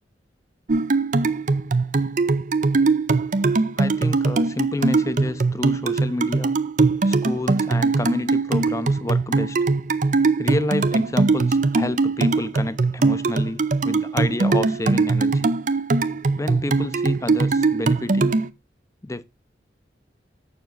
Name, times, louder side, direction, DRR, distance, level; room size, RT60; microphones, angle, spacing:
sound 1, 0.7-18.5, right 3 dB, 45° right, 0.5 m, -21 dB
voice 1, 3.8-6.5 7.1-9.6 10.4-15.5 16.4-18.4 19.0-19.2, left 1 dB, 15° left, 0.5 m, -29 dB
7.0 x 6.9 x 4.0 m
head